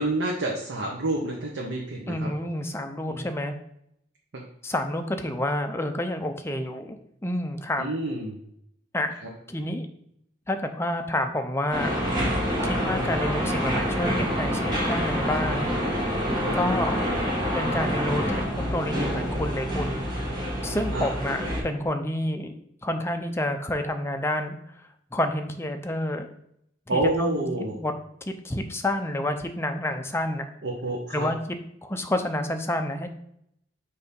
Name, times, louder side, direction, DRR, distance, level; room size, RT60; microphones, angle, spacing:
voice 1, 0.0-2.3 3.1-3.3 7.8-8.4 12.6-12.7 16.2-16.6 20.9-21.1 26.9-27.7 30.6-31.3, right 2 dB, 65° right, -1 dB, 0.9 m, -28 dB
voice 2, 2.1-3.5 4.6-7.0 7.2-7.9 8.9-9.1 9.5-9.9 10.5-12.0 12.6-15.7 16.5-17.0 17.5-20.0 20.6-22.5 22.8-24.5 25.1-26.3 26.9-27.4 27.7-27.9 28.4-30.5 31.1-31.4 31.8-33.1, left 1 dB, 15° left, 6 dB, 0.5 m, -29 dB
sound 1, 11.7-21.6, equal, 20° right, 1.5 m, -27 dB
6.5 x 2.8 x 5.3 m, 0.73 s
head